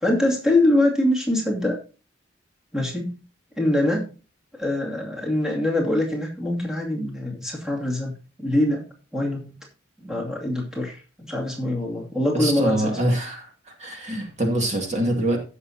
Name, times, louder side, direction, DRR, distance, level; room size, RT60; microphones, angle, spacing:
voice 1, 0.0-1.8 2.7-3.2 3.6-4.1 4.6-8.9 9.1-9.5 10.0-11.0 11.3-13.0, left 1 dB, 5° right, -2 dB, 2.5 m, -23 dB
voice 2, 12.3-13.5 13.8-15.4, right 1 dB, 35° right, 2 dB, 2.3 m, -24 dB
16.5 x 6.7 x 2.8 m, 0.34 s
head